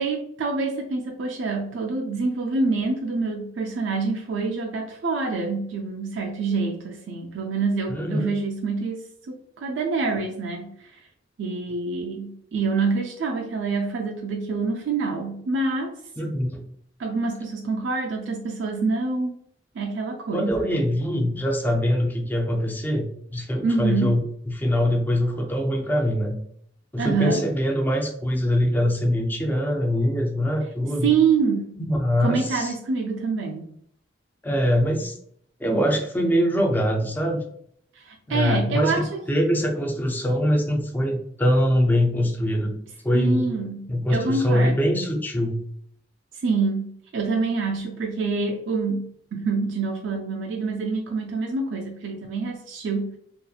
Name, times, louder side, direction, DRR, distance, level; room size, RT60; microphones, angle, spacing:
voice 1, 0.0-9.0 9.3-11.0 11.4-16.0 17.0-19.4 19.7-20.8 23.6-24.2 27.0-27.5 31.0-31.8 32.2-33.7 37.9-39.5 43.1-45.0 46.3-53.2, right 4 dB, 80° right, 1 dB, 0.4 m, -26 dB
voice 2, 7.9-8.3 16.2-16.6 20.3-24.2 24.5-26.4 26.9-31.1 31.9-32.7 34.4-35.1 35.6-37.4 38.3-42.8 43.0-43.5 43.9-45.6, equal, 10° left, 2 dB, 0.4 m, -23 dB
2.8 x 2.4 x 2.3 m, 0.67 s
head